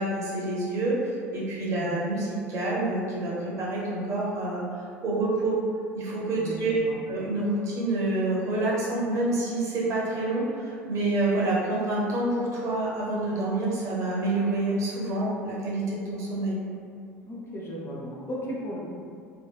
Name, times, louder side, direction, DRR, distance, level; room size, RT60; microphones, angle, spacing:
voice 1, 0.0-5.6 5.9-6.7 7.1-16.6, right 2 dB, 40° right, -6 dB, 0.7 m, -28 dB
voice 2, 1.6-1.9 6.4-7.0 17.2-18.8, equal, 30° left, -4 dB, 0.5 m, -36 dB
2.8 x 2.3 x 2.3 m, 2.3 s
figure-of-eight pair, 65°, 8 cm